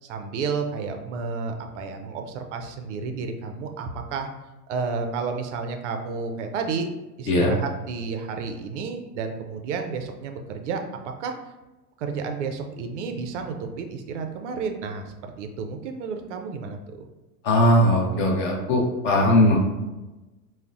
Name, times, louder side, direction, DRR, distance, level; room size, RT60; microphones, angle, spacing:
voice 1, 0.0-4.3 4.7-6.9 7.2-11.3 12.0-17.1, right 5 dB, 50° right, 5 dB, 0.4 m, -31 dB
voice 2, 17.4-19.6, left 1 dB, 25° left, 0 dB, 0.5 m, -19 dB
3.8 x 2.1 x 2.3 m, 1.1 s
hypercardioid pair, 105°, 48 cm